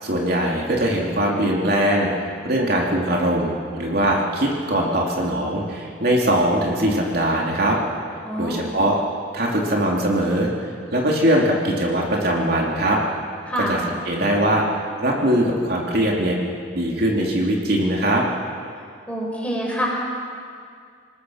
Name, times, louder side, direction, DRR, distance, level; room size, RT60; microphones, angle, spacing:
voice 1, 0.0-7.8 8.4-9.0 9.3-13.0 13.5-14.6 15.0-16.4 16.7-18.2, right 1 dB, 55° right, -2 dB, 3.0 m, -21 dB
voice 2, 8.2-8.6 13.5-13.7 19.1-19.9, equal, 5° left, -3 dB, 5.0 m, -26 dB
27.5 x 19.0 x 6.5 m, 2.2 s
head